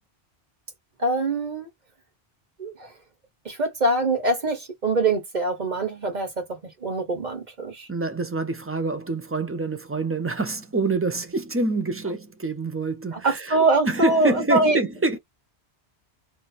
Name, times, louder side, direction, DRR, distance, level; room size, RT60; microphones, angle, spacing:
voice 1, 1.0-1.7 2.6-2.9 3.4-7.9 13.1-14.8, right 2 dB, 40° right, 1.3 m, -24 dB
voice 2, 7.9-13.6 13.8-15.2, right 3 dB, 20° right, 0.4 m, -26 dB
3.2 x 2.7 x 4.2 m
omnidirectional pair, 1.1 m